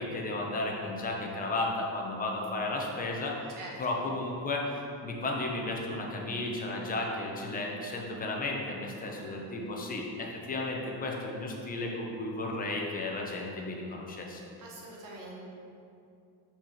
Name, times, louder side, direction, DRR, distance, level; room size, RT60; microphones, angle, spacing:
voice 1, 0.0-3.3 3.8-4.6 5.0-14.4, left 2 dB, 20° left, -1 dB, 0.8 m, -34 dB
voice 2, 14.6-15.4, right 2 dB, 50° right, -2 dB, 1.4 m, -44 dB
5.9 x 4.4 x 5.8 m, 2.6 s
cardioid pair, 175°, 41 cm